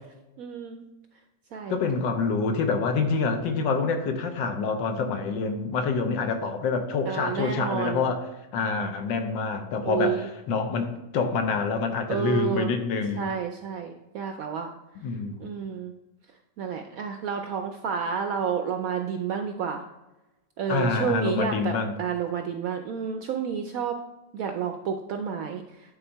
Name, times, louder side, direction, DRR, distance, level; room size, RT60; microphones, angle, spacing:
voice 1, 0.4-0.8 1.5-1.8 7.1-8.1 9.8-10.3 12.1-12.7 13.2-14.7 15.4-15.9 16.6-19.8 20.6-24.0 24.3-25.6, right 7 dB, 75° right, 5 dB, 0.8 m, -30 dB
voice 2, 1.7-8.2 8.5-13.3 15.0-15.5 20.7-21.9, left 4 dB, 85° left, 6 dB, 1.6 m, -26 dB
9.8 x 3.9 x 4.5 m, 1.0 s
omnidirectional pair, 2.0 m